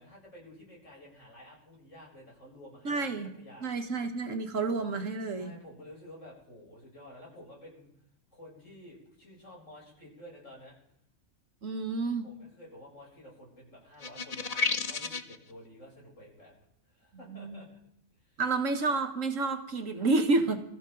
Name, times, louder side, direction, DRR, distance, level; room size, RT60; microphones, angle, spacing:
voice 1, 0.0-3.7 5.4-7.9 8.3-10.7 12.2-16.5 16.8-17.7 18.1-18.4 19.9-20.1, left 1 dB, 80° left, -3 dB, 7.9 m, -51 dB
voice 2, 2.9-3.3 3.6-5.5 11.6-12.3 17.3-17.6 18.4-20.6, right 3 dB, 80° right, 6 dB, 1.8 m, -29 dB
sound 1, 14.0-15.4, left 4 dB, 35° left, 0.7 m, -31 dB
24.5 x 14.5 x 3.9 m, 0.74 s
omnidirectional pair, 1.3 m